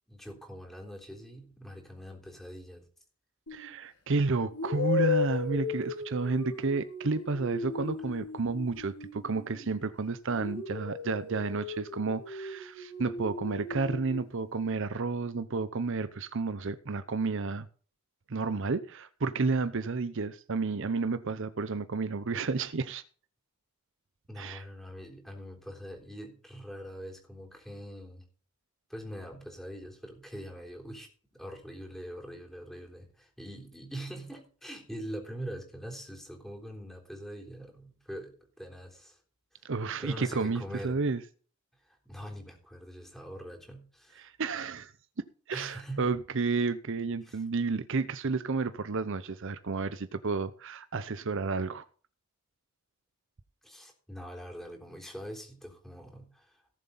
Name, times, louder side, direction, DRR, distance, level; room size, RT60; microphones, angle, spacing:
voice 1, 0.1-2.8 24.3-28.2 28.9-39.2 39.6-39.7 40.0-41.0 41.8-44.3 45.5-46.2 47.2-47.4 53.6-56.6, equal, ahead, 3.6 m, -43 dB
sound 1, 3.5-3.7 4.5-9.9 10.3-14.2, left 4 dB, 85° left, 4.3 m, -36 dB
voice 2, 3.5-17.7 18.3-23.0 24.4-24.6 39.6-41.2 44.2-44.9 45.2-51.9, right 4 dB, 60° right, 0.7 m, -31 dB
17.5 x 7.4 x 4.1 m
head